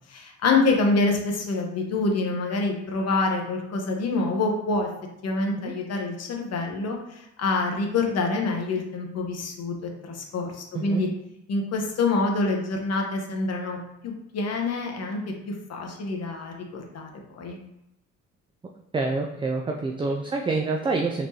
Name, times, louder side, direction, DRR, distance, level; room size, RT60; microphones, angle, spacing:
voice 1, 0.1-4.9 5.2-11.1 11.5-13.8 14.0-15.2 15.5-17.6, left 3 dB, 55° left, 2 dB, 0.9 m, -26 dB
voice 2, 10.7-11.1 18.9-21.3, right 3 dB, 15° right, 1 dB, 0.3 m, -27 dB
4.2 x 3.1 x 2.8 m, 0.86 s
cardioid pair, 90°, 30 cm